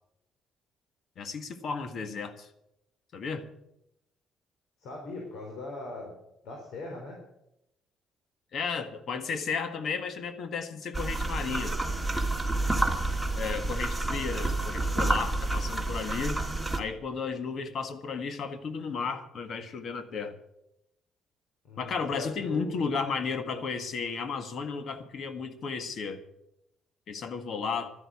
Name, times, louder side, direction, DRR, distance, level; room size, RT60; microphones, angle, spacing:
voice 1, 1.2-2.5 3.1-3.5 8.5-11.7 13.3-16.4 16.7-20.3 21.8-26.2 27.1-27.9, left 5 dB, 55° left, 9 dB, 1.7 m, -33 dB
voice 2, 4.8-6.1 6.4-7.2 21.6-22.8, left 2 dB, 80° left, 0 dB, 3.6 m, -40 dB
sound 1, 10.9-16.8, right 2 dB, ahead, 2.1 m, -29 dB
12.5 x 11.0 x 8.5 m, 0.85 s
cardioid pair, 115°, 0 cm